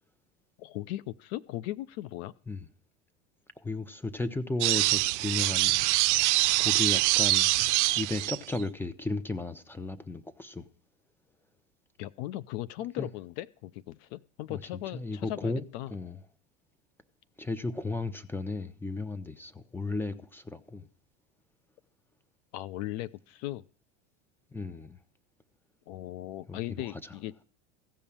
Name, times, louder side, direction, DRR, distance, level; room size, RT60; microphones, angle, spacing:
voice 1, 0.6-2.3 12.0-16.0 22.5-23.6 25.9-27.3, left 15 dB, 60° left, 0.6 m, -38 dB
voice 2, 3.6-5.8 6.2-7.5 7.9-10.7 13.0-13.1 14.5-14.6 14.9-15.6 15.9-16.2 17.4-20.9 24.5-25.0 26.5-26.9, left 2 dB, 5° left, 0.9 m, -34 dB
sound 1, 4.6-8.6, right 20 dB, 70° right, 0.5 m, -24 dB
15.0 x 5.5 x 8.7 m
hypercardioid pair, 100°, 36 cm